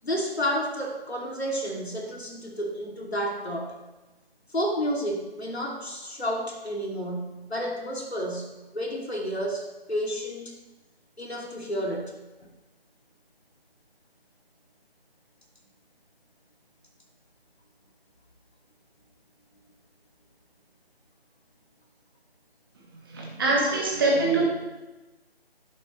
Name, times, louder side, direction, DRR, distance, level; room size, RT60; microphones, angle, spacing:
voice 1, 0.0-3.8 4.5-10.5 11.2-12.5, equal, 80° left, 1 dB, 2.9 m, -31 dB
voice 2, 23.1-24.4, right 2 dB, 20° right, -3 dB, 1.8 m, -23 dB
11.0 x 11.0 x 3.2 m, 1.1 s
figure-of-eight pair, 160°, 32 cm